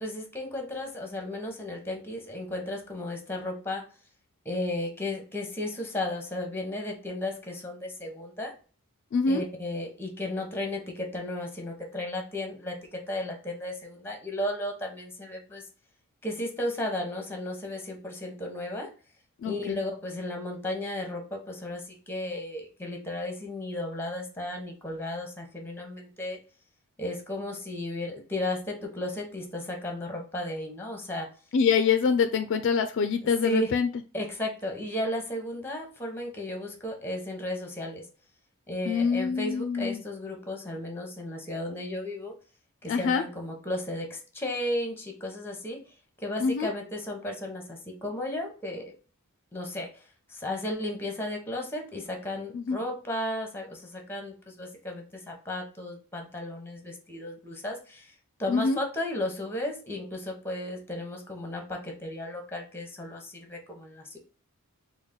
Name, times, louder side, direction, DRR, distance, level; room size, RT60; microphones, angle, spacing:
voice 1, 0.0-3.8 4.4-8.5 9.3-15.7 16.2-18.9 19.4-26.4 27.0-31.3 33.2-33.7 34.1-38.0 38.7-42.3 42.8-45.8 46.2-48.9 49.5-50.0 50.3-58.1 58.4-64.2, left 1 dB, 10° left, 3 dB, 0.9 m, -34 dB
voice 2, 9.1-9.4 19.4-19.8 31.5-33.9 38.9-40.0 42.9-43.2 46.4-46.7 52.5-52.8 58.5-58.8, left 5 dB, 55° left, 8 dB, 0.3 m, -25 dB
3.9 x 2.1 x 3.6 m, 0.36 s
head